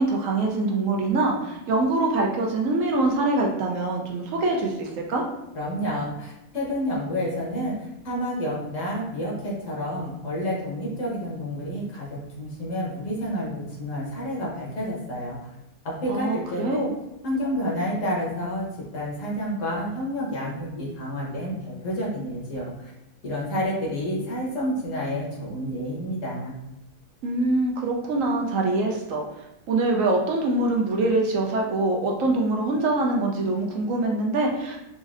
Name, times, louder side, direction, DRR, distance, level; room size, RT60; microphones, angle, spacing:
voice 1, 0.0-5.2 16.1-16.8 27.2-29.2 29.7-34.8, right 2 dB, 70° right, 0 dB, 0.9 m, -24 dB
voice 2, 5.5-15.5 15.8-16.9 17.2-18.7 18.9-22.9 23.2-26.6, equal, 65° left, -4 dB, 1.4 m, -29 dB
4.0 x 2.6 x 2.5 m, 0.93 s
omnidirectional pair, 1.5 m